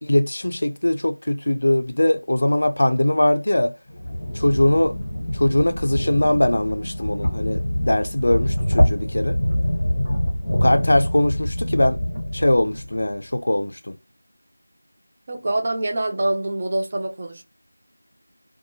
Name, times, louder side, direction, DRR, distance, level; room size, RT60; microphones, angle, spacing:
voice 1, 0.0-3.7 4.4-4.9 5.3-9.4 10.6-12.0 12.3-13.9, left 1 dB, 50° left, 0.4 m, -21 dB
sound 1, 3.9-13.1, left 1 dB, 10° left, 0.9 m, -25 dB
voice 2, 15.3-17.4, right 1 dB, 20° right, 0.3 m, -25 dB
2.7 x 2.2 x 2.7 m
figure-of-eight pair, 180°, 0 cm